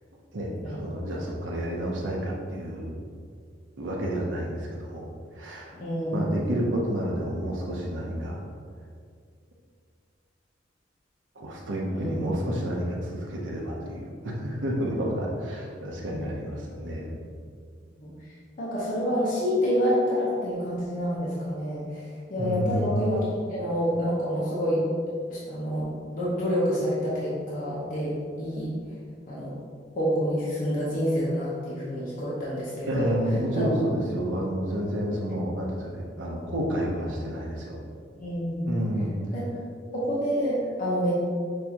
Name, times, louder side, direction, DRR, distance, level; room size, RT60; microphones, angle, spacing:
voice 1, 0.3-2.9 3.8-5.7 6.1-8.4 11.3-17.1 22.4-23.0 32.8-37.8 38.7-39.2, equal, 85° right, -3 dB, 0.7 m, -30 dB
voice 2, 5.7-6.5 11.9-12.2 16.2-16.4 18.0-18.1 18.6-24.8 25.3-25.8 26.1-28.7 29.3-29.5 30.0-33.1 33.5-33.7 38.2-38.7 39.3-39.4 39.9-41.1, equal, 50° left, -8 dB, 0.9 m, -28 dB
6.5 x 2.7 x 2.8 m, 2.2 s
head